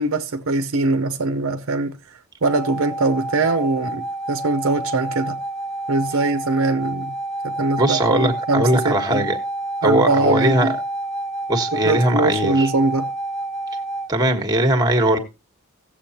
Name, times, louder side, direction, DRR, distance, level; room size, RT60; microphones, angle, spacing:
voice 1, 0.0-2.0 2.4-5.4 5.9-7.1 7.4-9.2 9.8-10.7 11.7-13.1, right 2 dB, 65° right, 0.7 m, -22 dB
sound 1, 2.4-14.1, right 1 dB, 5° left, 1.0 m, -29 dB
voice 2, 7.8-9.4 9.8-10.7 11.5-12.7 14.1-15.2, right 1 dB, 20° right, 1.4 m, -19 dB
17.0 x 7.4 x 2.8 m
head